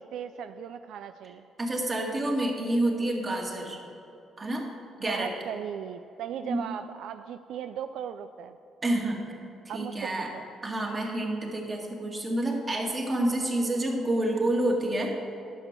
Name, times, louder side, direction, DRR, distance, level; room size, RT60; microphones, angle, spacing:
voice 1, 0.0-1.4 5.0-8.6 9.7-10.4, right 8 dB, 80° right, 10 dB, 0.3 m, -37 dB
voice 2, 1.6-3.8 4.4-4.7 5.0-5.3 6.4-6.7 8.8-9.2 9.7-10.3 10.6-15.2, right 1 dB, 30° right, 0 dB, 2.0 m, -28 dB
11.5 x 6.2 x 6.7 m, 2.8 s
cardioid pair, 90°, 0 cm